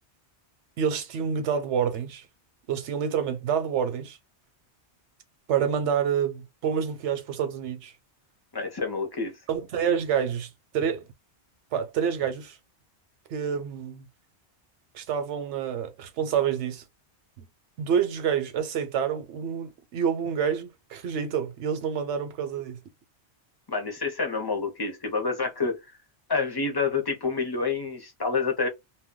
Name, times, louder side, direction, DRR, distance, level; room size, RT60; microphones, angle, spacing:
voice 1, 0.8-2.3 2.7-4.2 5.5-7.9 9.5-11.1 11.7-12.6 13.3-14.1 14.9-16.8 17.4-17.5 17.8-22.8, right 7 dB, 90° right, 1.0 m, -28 dB
voice 2, 8.5-9.3 23.7-25.8 26.3-28.7, left 4 dB, 30° left, 0.5 m, -28 dB
2.2 x 2.2 x 3.6 m
omnidirectional pair, 1.1 m